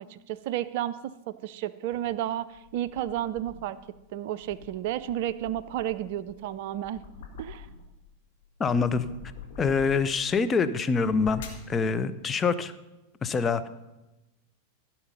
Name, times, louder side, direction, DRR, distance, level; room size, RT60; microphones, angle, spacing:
voice 1, 0.0-3.8 4.1-7.0 7.4-7.7, right 12 dB, 50° right, 16 dB, 0.4 m, -32 dB
sound 1, 1.9-3.8 4.3-8.0 8.4-10.3 10.9-11.7, left 4 dB, 55° left, 1.7 m, -46 dB
voice 2, 8.6-9.1 9.6-11.4 11.7-12.7 13.2-13.6, left 5 dB, 20° left, 10 dB, 0.5 m, -25 dB
14.5 x 5.8 x 5.6 m, 1.0 s
figure-of-eight pair, 90°, 0 cm